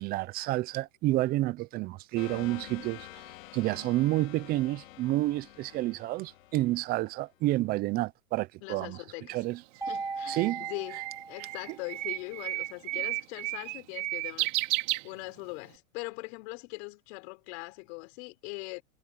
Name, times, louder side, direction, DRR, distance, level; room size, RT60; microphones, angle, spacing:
voice 1, 0.0-3.1 3.5-9.0 9.3-9.6 10.3-10.6, right 17 dB, 20° right, 0.6 m, -29 dB
sound 1, 2.2-7.6, left 16 dB, 65° left, 4.5 m, -49 dB
voice 2, 8.6-9.4 9.9-11.0 11.3-18.8, left 29 dB, 50° left, 4.1 m, -41 dB
Bird, 9.4-15.7, right 21 dB, 55° right, 4.0 m, -33 dB
Mallet percussion, 9.8-12.1, right 4 dB, 5° right, 2.1 m, -38 dB
hypercardioid pair, 135°, 43 cm